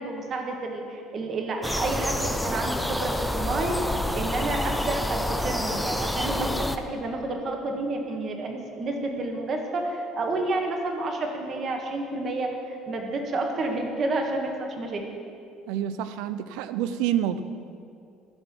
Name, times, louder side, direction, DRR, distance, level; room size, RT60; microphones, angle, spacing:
voice 1, 0.0-2.2 2.4-3.7 4.1-6.5 6.9-15.0, right 2 dB, 30° right, 3 dB, 1.4 m, -30 dB
sound 1, 1.6-6.8, left 1 dB, ahead, 0.4 m, -28 dB
voice 2, 15.7-17.4, right 10 dB, 85° right, 12 dB, 0.5 m, -28 dB
15.0 x 6.8 x 6.0 m, 2.5 s
cardioid pair, 165°, 0 cm